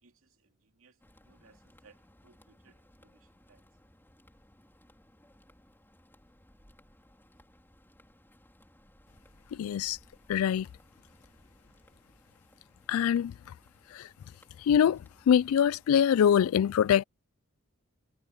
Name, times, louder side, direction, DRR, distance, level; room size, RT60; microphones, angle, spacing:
voice 1, 0.0-3.6, right 4 dB, 75° right, 2.4 m, -64 dB
sound 1, 1.0-16.0, equal, 10° left, 4.3 m, -61 dB
voice 2, 9.6-10.0 10.3-10.7 12.9-13.3 14.0-14.1 14.7-15.0 15.3-17.0, left 8 dB, 80° left, 0.3 m, -23 dB
head